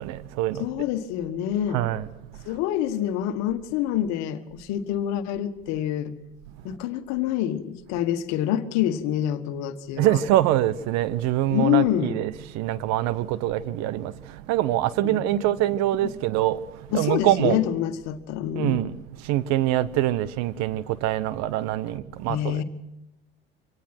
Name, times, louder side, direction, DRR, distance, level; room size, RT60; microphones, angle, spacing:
voice 1, 0.0-0.7 1.7-2.1 10.0-14.1 14.5-16.6 16.9-17.6 18.6-18.9 19.3-22.6, right 14 dB, 60° right, 1.1 m, -24 dB
voice 2, 0.6-1.8 2.4-6.1 6.6-10.2 11.5-12.2 15.0-15.4 16.9-18.9 22.3-22.6, left 11 dB, 60° left, 1.6 m, -26 dB
25.0 x 18.5 x 6.0 m
hypercardioid pair, 70°, 31 cm